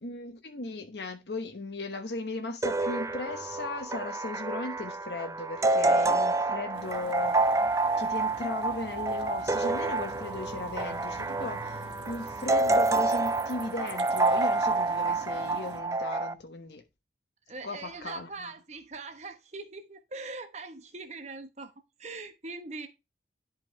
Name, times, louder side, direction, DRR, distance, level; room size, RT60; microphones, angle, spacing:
voice 1, 0.0-7.7 8.0-16.8 17.6-18.5, left 2 dB, 70° left, 1.1 m, -37 dB
sound 1, 2.6-16.3, right 2 dB, 15° right, 0.4 m, -28 dB
sound 2, 6.7-15.8, right 3 dB, 75° right, 1.5 m, -47 dB
voice 2, 17.5-21.7 22.0-22.9, right 3 dB, 40° right, 1.0 m, -41 dB
10.5 x 5.6 x 3.1 m
head